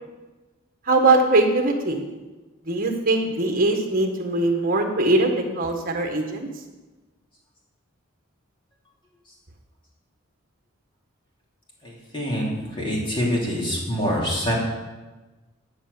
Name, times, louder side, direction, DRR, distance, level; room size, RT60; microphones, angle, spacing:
voice 1, 0.9-2.0 2.7-6.5, right 2 dB, 45° right, 4 dB, 1.6 m, -21 dB
voice 2, 11.8-14.5, equal, 25° left, -4 dB, 3.2 m, -25 dB
11.0 x 6.8 x 6.9 m, 1.2 s
head